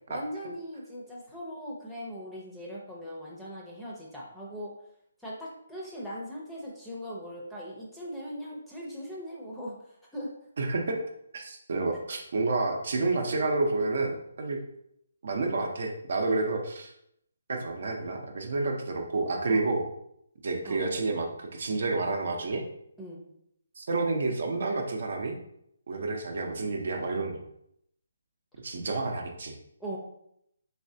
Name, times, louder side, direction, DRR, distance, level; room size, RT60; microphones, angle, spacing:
voice 1, 0.1-4.7 5.2-9.8 10.1-10.3 19.5-19.7 20.6-20.8 23.0-23.2 29.8-30.0, equal, 5° left, -5 dB, 0.6 m, -39 dB
voice 2, 10.6-11.0 11.3-14.6 15.2-16.9 17.5-19.9 20.4-22.7 23.8-25.4 25.9-27.4 28.6-29.5, right 3 dB, 60° right, 2 dB, 0.6 m, -29 dB
4.1 x 3.2 x 2.7 m, 0.75 s
hypercardioid pair, 160°, 0 cm